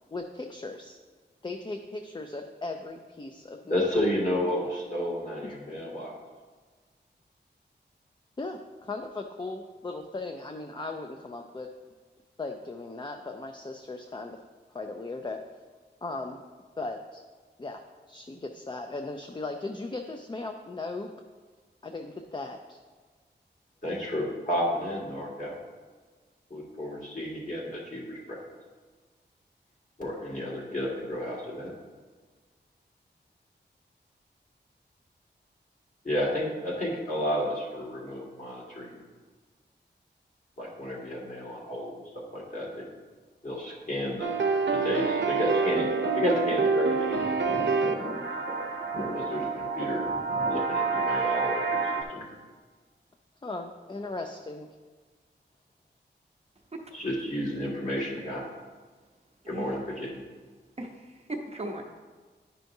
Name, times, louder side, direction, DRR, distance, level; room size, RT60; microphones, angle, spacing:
voice 1, 0.1-1.0 1.4-3.9 5.4-5.5 8.4-11.7 12.4-14.4 14.7-15.4 16.0-16.4 16.8-17.2 17.6-21.1 21.8-22.8 53.4-54.7, left 3 dB, 25° left, 4 dB, 0.4 m, -37 dB
voice 2, 3.7-6.1 23.8-25.6 26.5-28.4 30.0-31.7 36.0-39.0 40.6-42.9 43.4-44.3 44.7-45.9 46.1-47.3 49.1-50.1 50.5-52.3 56.9-58.4 59.5-60.2, left 1 dB, 45° left, -5 dB, 2.1 m, -31 dB
sound 1, 44.2-52.0, right 5 dB, 80° right, 0.6 m, -27 dB
sound 2, 45.5-50.9, equal, 75° left, 1.9 m, -38 dB
voice 3, 60.8-61.8, right 1 dB, 35° right, 1 dB, 0.8 m, -37 dB
10.0 x 5.6 x 2.7 m, 1.4 s
wide cardioid pair, 100°, 19 cm